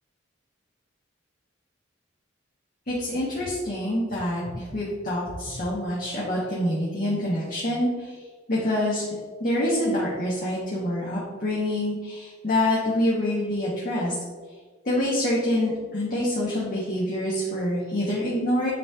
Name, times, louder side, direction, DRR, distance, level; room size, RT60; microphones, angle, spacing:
voice 1, 2.9-8.2 8.5-9.0 9.4-14.2 14.8-18.7, left 1 dB, 45° left, -6 dB, 1.1 m, -26 dB
9.3 x 3.1 x 3.4 m, 1.5 s
head